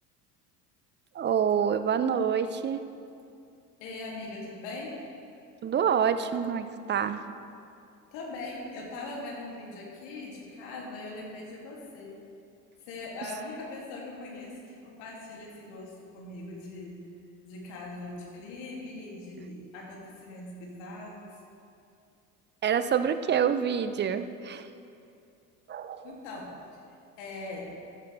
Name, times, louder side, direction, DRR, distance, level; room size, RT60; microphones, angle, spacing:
voice 1, 1.1-2.8 5.6-7.2 22.6-24.7 25.7-26.1, right 7 dB, 20° right, 11 dB, 0.6 m, -27 dB
voice 2, 3.8-5.0 8.1-12.2 12.8-17.0 17.4-21.4 26.0-26.5 27.2-27.8, left 2 dB, 60° left, -3 dB, 3.0 m, -41 dB
15.0 x 10.5 x 3.5 m, 2.6 s
hypercardioid pair, 70°, 49 cm